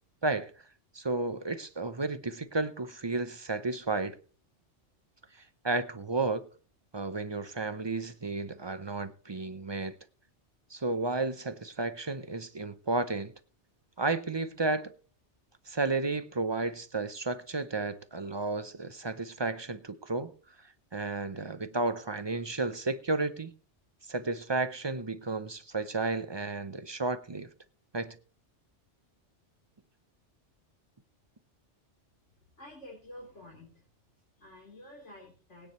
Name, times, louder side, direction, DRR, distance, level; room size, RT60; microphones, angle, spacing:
voice 1, 0.9-4.2 5.6-6.5 6.9-10.0 10.7-13.3 14.0-14.9 15.7-20.3 20.9-23.5 24.1-27.5 27.9-28.2, right 3 dB, 30° right, 0.6 m, -32 dB
voice 2, 32.5-33.8 34.1-35.7, left 1 dB, 80° left, 3.8 m, -50 dB
21.0 x 9.5 x 3.1 m
omnidirectional pair, 1.2 m